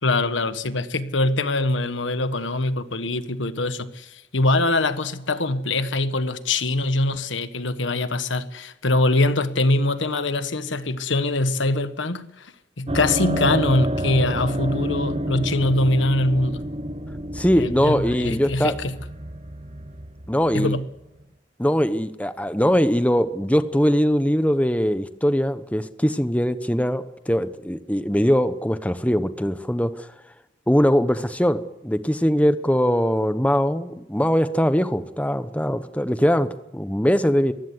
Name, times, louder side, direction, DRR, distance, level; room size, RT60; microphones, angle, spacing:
voice 1, 0.0-12.5 12.8-16.6 17.6-19.0 20.5-20.9, left 2 dB, 90° left, 1.5 m, -23 dB
sound 1, 12.9-21.2, right 1 dB, 30° right, 1.3 m, -29 dB
voice 2, 17.3-18.8 20.3-20.8 21.6-30.1 30.7-37.5, equal, 5° left, 1.0 m, -21 dB
22.5 x 15.5 x 9.7 m
head